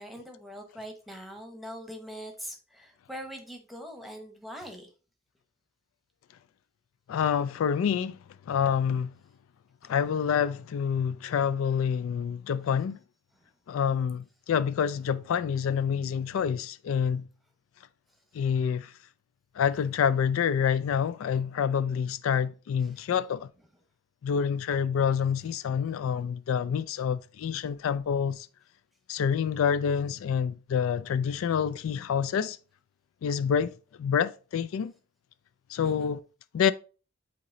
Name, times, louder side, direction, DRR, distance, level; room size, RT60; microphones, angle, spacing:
voice 1, 0.0-4.9 9.8-9.9 22.8-23.0 26.1-26.2 35.8-36.1, equal, ahead, 0.9 m, -43 dB
voice 2, 7.1-8.2 8.5-9.1 9.9-13.0 13.7-17.2 18.3-18.9 19.6-23.5 24.2-28.5 29.1-32.6 33.2-33.7 34.0-34.9 35.7-36.2 36.5-36.7, left 7 dB, 80° left, 0.3 m, -27 dB
8.4 x 2.9 x 3.8 m
head